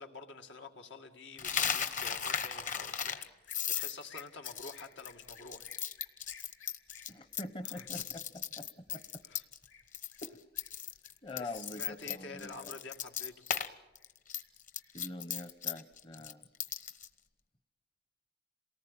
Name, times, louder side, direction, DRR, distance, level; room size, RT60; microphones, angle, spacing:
voice 1, 0.0-5.7 7.6-8.1 9.2-9.5 11.3-13.3, left 3 dB, 90° left, 4 dB, 2.2 m, -48 dB
Coin (dropping), 1.4-9.7 9.9-10.3 10.6-13.7 14.0-17.1, left 8 dB, 45° left, 1.1 m, -36 dB
sound 1, 2.8-12.1 12.5-13.2 13.6-14.5 14.8-16.1, left 6 dB, 70° left, 3.0 m, -60 dB
voice 2, 7.1-9.2 10.2-10.4 11.2-12.7 14.9-16.4, left 2 dB, 30° left, 10 dB, 0.8 m, -45 dB
28.0 x 19.0 x 8.8 m, 1.1 s
head